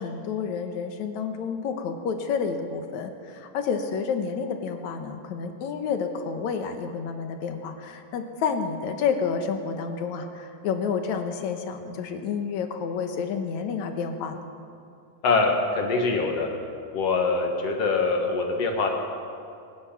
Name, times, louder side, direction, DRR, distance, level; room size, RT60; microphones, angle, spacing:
voice 1, 0.0-14.4, left 6 dB, 75° left, 6 dB, 2.4 m, -29 dB
voice 2, 15.2-16.5 16.9-18.9, left 3 dB, 60° left, 2 dB, 2.5 m, -24 dB
24.5 x 9.6 x 5.9 m, 2.5 s
omnidirectional pair, 3.3 m